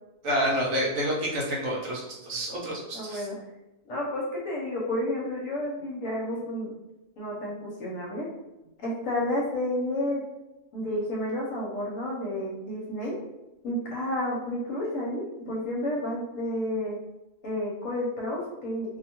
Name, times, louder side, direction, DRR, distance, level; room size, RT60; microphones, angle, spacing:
voice 1, 0.2-3.3, equal, 65° right, -4 dB, 0.9 m, -28 dB
voice 2, 2.9-3.4 3.9-6.7 7.2-8.2 8.8-10.2 10.7-13.1 13.6-17.0 17.4-19.0, left 1 dB, 65° left, -4 dB, 1.0 m, -31 dB
2.6 x 2.2 x 2.8 m, 0.99 s
omnidirectional pair, 1.7 m